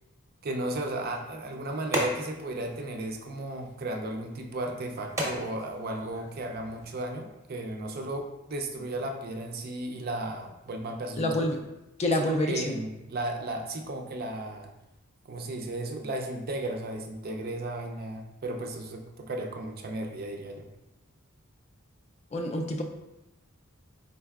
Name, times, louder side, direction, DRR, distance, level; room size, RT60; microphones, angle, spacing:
voice 1, 0.4-11.4 12.1-14.7 15.3-20.7, right 1 dB, 45° right, 3 dB, 0.4 m, -35 dB
sound 1, 0.8-6.9, equal, 15° right, 0.7 m, -38 dB
voice 2, 11.2-11.6 12.0-12.8 22.3-22.8, left 1 dB, 30° left, 3 dB, 0.3 m, -27 dB
4.4 x 3.9 x 2.3 m, 0.97 s
head